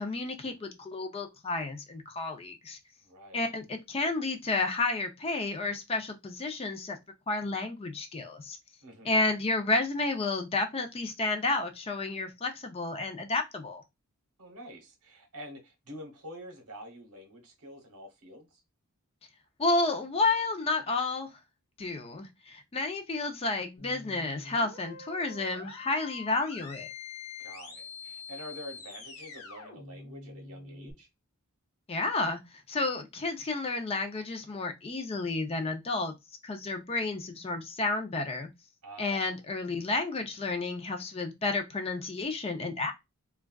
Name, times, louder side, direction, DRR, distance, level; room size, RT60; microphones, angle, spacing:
voice 1, 0.0-2.8 3.3-7.0 7.3-8.6 9.0-13.8 19.6-21.3 21.8-26.9 31.9-32.4 32.7-36.1 36.4-38.5 39.0-42.9, left 3 dB, 25° left, 0.4 m, -31 dB
voice 2, 3.0-3.5 8.8-9.2 14.4-18.6 27.4-31.1 38.8-39.3, equal, 75° right, 1.0 m, -47 dB
sound 1, 23.8-30.9, left 4 dB, 70° left, 0.8 m, -45 dB
3.4 x 2.3 x 2.2 m
head